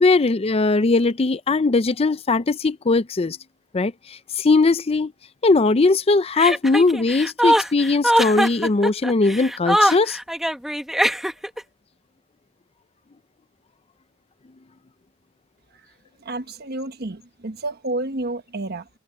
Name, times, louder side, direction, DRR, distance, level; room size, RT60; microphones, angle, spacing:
voice 1, 0.0-3.4 3.7-5.1 5.4-10.2, left 3 dB, 30° left, 0.5 m, -19 dB
Chuckle chortle, 6.4-11.6, equal, ahead, 1.4 m, -21 dB
voice 2, 16.2-18.9, right 2 dB, 55° right, 1.3 m, -30 dB
head